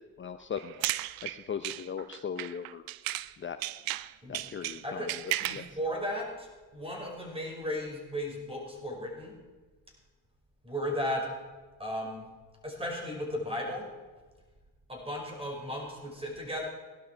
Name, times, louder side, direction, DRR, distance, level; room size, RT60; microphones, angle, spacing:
voice 1, 0.2-2.8 3.4-3.6 4.3-5.8, left 7 dB, 35° left, 9 dB, 0.7 m, -39 dB
sound 1, 0.6-3.3 3.6-5.7, right 17 dB, 75° right, 0.6 m, -35 dB
voice 2, 5.4-9.3 10.6-11.3 11.8-12.2 12.6-13.9 14.9-16.6, equal, 15° right, 0 dB, 5.7 m, -35 dB
17.5 x 12.0 x 4.7 m, 1.3 s
supercardioid pair, 75°, 35 cm